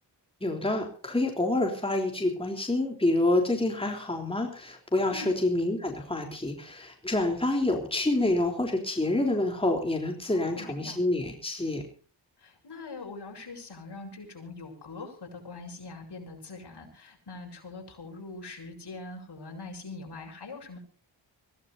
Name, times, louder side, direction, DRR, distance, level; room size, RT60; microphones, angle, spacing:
voice 1, 0.4-11.8, left 2 dB, 10° left, 2 dB, 3.7 m, -27 dB
voice 2, 5.0-5.3 10.3-11.0 12.4-20.8, left 3 dB, 60° left, 2 dB, 6.9 m, -43 dB
25.0 x 17.0 x 2.7 m, 0.40 s
cardioid pair, 75°, 46 cm